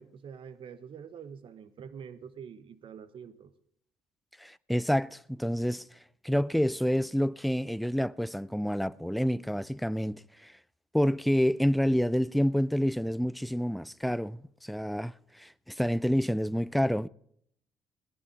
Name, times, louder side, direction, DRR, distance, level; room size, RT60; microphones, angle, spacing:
voice 1, 0.0-3.5, right 7 dB, 55° right, 1.2 m, -46 dB
voice 2, 4.4-5.9 6.2-10.5 10.9-17.1, equal, ahead, 0.4 m, -28 dB
17.0 x 11.0 x 5.1 m
hypercardioid pair, 55°, 10 cm